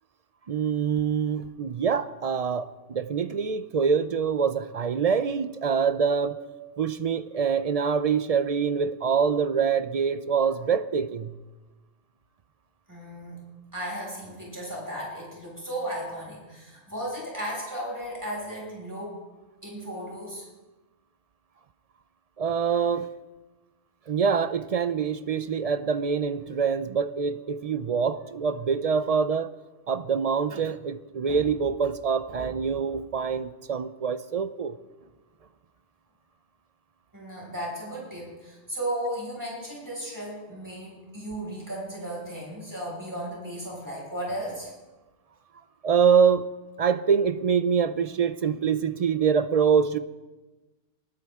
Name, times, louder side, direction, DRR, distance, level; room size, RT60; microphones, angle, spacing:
voice 1, 0.5-6.4 6.8-11.3 22.4-23.1 24.1-29.5 29.9-34.8 45.8-46.5 46.8-50.0, right 6 dB, 50° right, 13 dB, 0.5 m, -25 dB
voice 2, 12.9-13.4 13.7-19.2 19.6-20.5 37.1-44.7, right 1 dB, 15° right, -4 dB, 5.7 m, -35 dB
21.0 x 13.0 x 3.6 m, 1.2 s
omnidirectional pair, 1.2 m